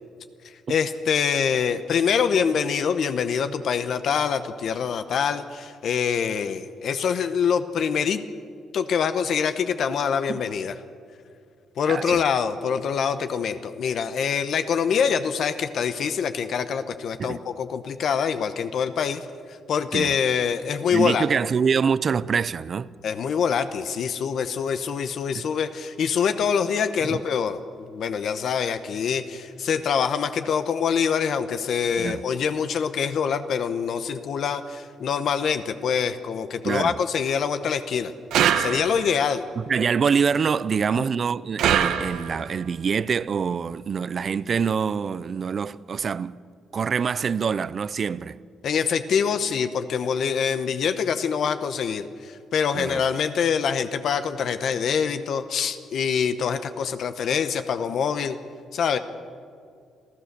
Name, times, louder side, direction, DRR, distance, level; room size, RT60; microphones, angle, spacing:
voice 1, 0.7-8.2 8.7-10.7 11.8-19.2 19.7-21.3 23.0-38.1 38.6-39.5 40.9-41.1 48.6-58.4 58.7-59.0, left 7 dB, 55° left, 0.9 m, -25 dB
voice 2, 11.9-12.2 17.2-17.4 19.9-20.1 20.9-22.9 25.4-25.5 27.1-27.2 32.0-32.2 36.6-37.0 39.6-46.4 46.7-48.4 52.7-53.0, right 6 dB, 35° right, 0.5 m, -25 dB
sound 1, 38.3-39.2 41.6-42.5, right 9 dB, 80° right, 1.1 m, -23 dB
27.0 x 15.5 x 6.8 m
cardioid pair, 155°, 0 cm